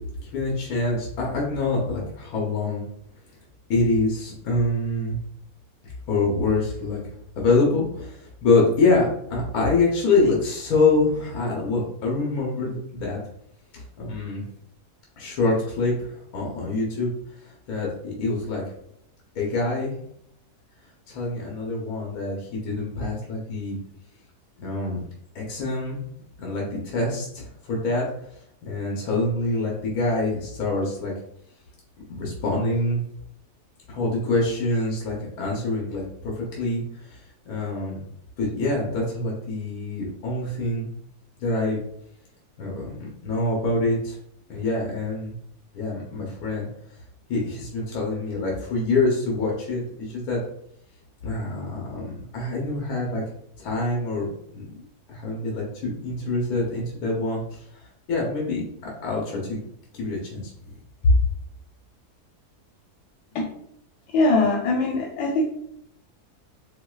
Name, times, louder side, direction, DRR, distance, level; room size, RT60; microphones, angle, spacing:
voice 1, 0.2-2.8 3.7-5.2 6.1-7.0 7.4-13.2 13.7-14.4 15.2-17.1 17.4-18.6 19.3-19.9 21.1-23.8 24.6-25.0 25.3-26.0 26.4-28.0 28.6-31.1 32.1-33.0 33.9-38.0 38.4-40.9 41.4-41.8 42.6-44.2 44.5-45.3 45.7-46.7 47.3-50.4 51.2-53.2 53.6-54.8 55.1-57.8 58.1-59.6 59.9-60.4, left 2 dB, 70° left, -3 dB, 1.2 m, -25 dB
voice 2, 64.1-65.5, left 2 dB, 90° left, -1 dB, 1.2 m, -21 dB
4.5 x 2.1 x 2.3 m, 0.73 s
omnidirectional pair, 1.7 m